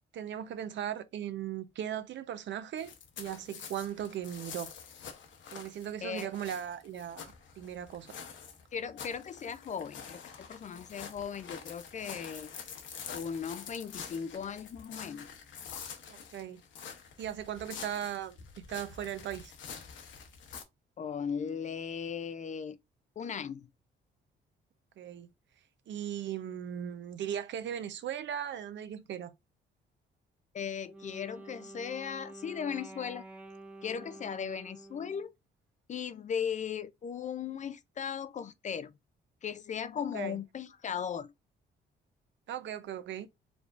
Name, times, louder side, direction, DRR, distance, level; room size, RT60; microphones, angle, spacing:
voice 1, 0.1-2.9 3.2-4.7 5.5-8.1 16.1-16.6 17.2-18.4 18.7-19.5 25.0-25.3 25.9-29.3 40.1-40.4 42.5-43.3, right 10 dB, 65° right, 0.7 m, -38 dB
sound 1, 2.8-20.6, left 7 dB, 70° left, 1.0 m, -47 dB
voice 2, 6.0-6.3 8.7-12.5 13.1-15.3 21.0-22.8 23.2-23.7 30.5-33.2 33.8-35.3 35.9-38.9 39.4-41.3, left 7 dB, 40° left, 0.4 m, -37 dB
Wind instrument woodwind instrument, 30.7-35.2, right 2 dB, 5° right, 0.9 m, -49 dB
4.9 x 3.5 x 2.4 m
cardioid pair, 90°, 20 cm